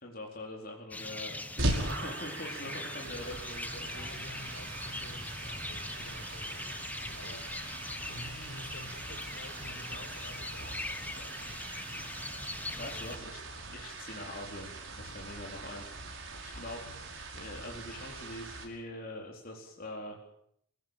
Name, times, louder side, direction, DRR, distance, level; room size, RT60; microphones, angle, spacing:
voice 1, 0.0-4.4 12.7-14.7 15.0-16.1 16.4-16.8 17.3-20.2, left 1 dB, 45° left, -1 dB, 4.3 m, -43 dB
sound 1, 0.9-13.2, left 2 dB, 10° left, 1.1 m, -41 dB
sound 2, 1.6-18.6, right 2 dB, 65° right, 5.6 m, -41 dB
voice 2, 3.8-7.4 8.1-11.5, left 1 dB, 75° left, 5 dB, 5.8 m, -50 dB
26.0 x 16.5 x 9.1 m, 0.71 s
head